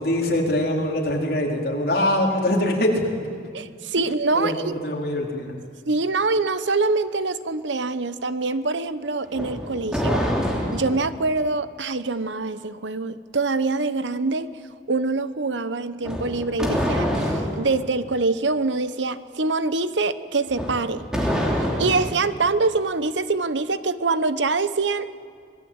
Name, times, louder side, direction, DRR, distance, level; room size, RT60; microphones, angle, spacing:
voice 1, 0.0-3.0 4.3-5.6, left 1 dB, 55° left, -1 dB, 4.3 m, -23 dB
voice 2, 3.5-4.7 5.9-10.2 10.7-14.5 14.9-21.3 21.8-25.1, right 3 dB, 85° right, 13 dB, 1.0 m, -24 dB
sound 1, 9.3-11.1 16.0-17.6 20.5-22.2, equal, 5° right, 3.4 m, -25 dB
26.0 x 20.5 x 8.9 m, 2.1 s
head